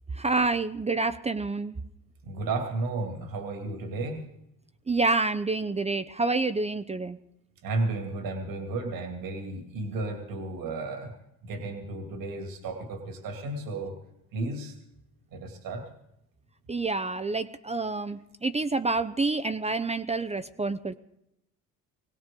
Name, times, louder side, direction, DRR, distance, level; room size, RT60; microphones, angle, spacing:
voice 1, 0.1-1.7 4.9-7.2 16.7-20.9, right 3 dB, 20° right, 10 dB, 0.6 m, -28 dB
voice 2, 2.2-4.3 7.6-11.1 11.4-13.9 14.3-14.7 15.3-15.9, right 2 dB, 70° right, 4 dB, 2.5 m, -33 dB
21.0 x 17.0 x 3.7 m, 0.84 s
supercardioid pair, 80°, 36 cm